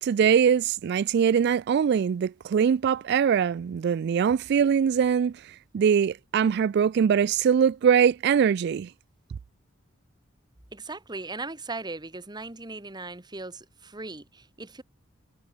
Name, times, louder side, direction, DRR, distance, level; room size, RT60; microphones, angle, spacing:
voice 1, 0.0-5.3 5.7-8.9, right 7 dB, 60° right, 0.3 m, -22 dB
voice 2, 10.7-14.8, right 3 dB, 20° right, 1.9 m, -38 dB
head